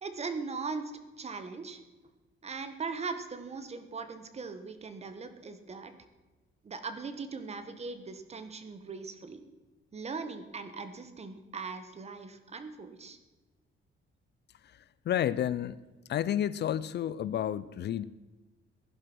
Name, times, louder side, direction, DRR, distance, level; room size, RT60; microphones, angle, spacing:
voice 1, 0.0-1.8 2.4-5.9 6.6-9.4 9.9-13.2, right 4 dB, 30° right, 9 dB, 1.5 m, -39 dB
voice 2, 14.6-15.8 16.1-18.0, left 10 dB, 55° left, 17 dB, 0.6 m, -31 dB
16.5 x 11.0 x 6.2 m, 1.2 s
cardioid pair, 155°, 21 cm